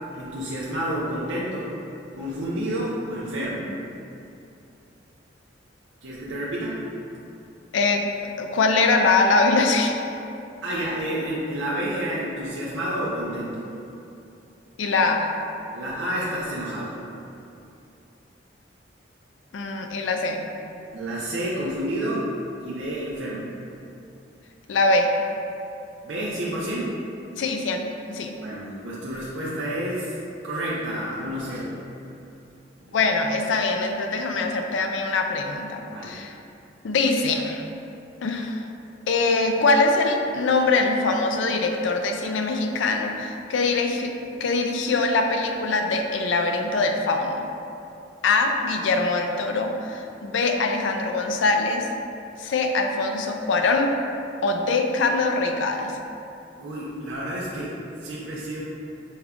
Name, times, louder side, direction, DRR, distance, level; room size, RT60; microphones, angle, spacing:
voice 1, 0.1-1.7 2.1-3.7 6.0-6.8 10.6-13.7 15.7-17.0 20.9-22.3 22.6-23.5 26.0-27.0 28.4-30.1 30.4-31.8 32.9-33.0 35.8-36.2 56.6-58.6, right 1 dB, 85° right, -7 dB, 0.6 m, -29 dB
voice 2, 7.7-8.0 8.4-10.0 14.8-15.3 19.5-20.4 24.7-25.1 27.4-28.3 32.9-36.4 36.8-37.6 38.2-38.7 39.1-44.1 44.4-47.5 48.2-51.9 52.4-53.9 54.4-56.0, left 3 dB, 85° left, 4 dB, 0.4 m, -23 dB
5.3 x 2.3 x 3.5 m, 2.7 s
head